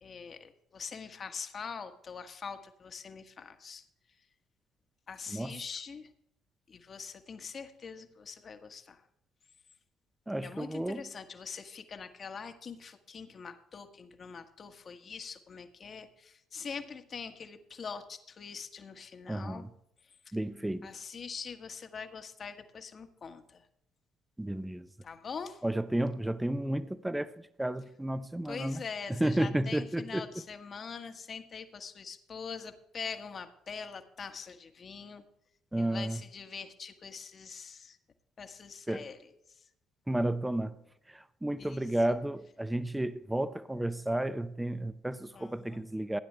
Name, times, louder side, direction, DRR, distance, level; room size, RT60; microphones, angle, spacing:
voice 1, 0.0-3.8 5.1-6.1 6.7-9.0 10.4-19.7 20.2-20.4 20.8-23.6 25.0-25.6 28.5-35.2 35.7-38.0 38.4-39.6 41.6-41.8 45.3-45.8, left 5 dB, 45° left, 1.4 m, -43 dB
voice 2, 10.3-11.0 19.3-19.7 20.3-20.9 24.4-24.9 25.6-28.8 29.2-30.3 35.7-36.2 38.9-39.0 40.1-40.7 41.1-46.2, right 1 dB, 10° right, 0.7 m, -32 dB
16.0 x 10.0 x 3.4 m
hypercardioid pair, 55°, 0 cm